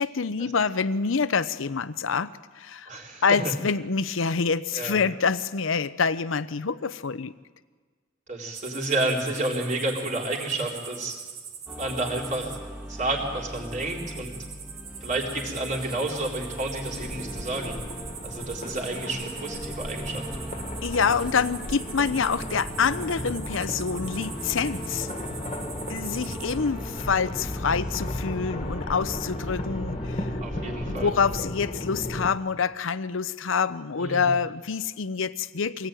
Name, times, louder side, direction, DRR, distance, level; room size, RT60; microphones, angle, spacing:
voice 1, 0.0-2.9 3.2-7.3 20.8-25.1 25.9-35.9, left 5 dB, 65° left, 15 dB, 0.7 m, -26 dB
voice 2, 2.9-3.5 4.7-5.0 8.3-11.2 11.7-12.6 12.9-14.3 15.0-17.7 18.2-20.3 30.4-31.1 34.0-34.3, right 2 dB, 40° right, 0 dB, 4.2 m, -30 dB
sound 1, 8.5-26.5, right 7 dB, 90° right, 3.0 m, -42 dB
sound 2, 11.7-31.1, equal, 5° right, 1.8 m, -40 dB
sound 3, 16.9-32.3, left 1 dB, 35° left, 1.6 m, -35 dB
24.5 x 18.5 x 9.1 m, 1.5 s
head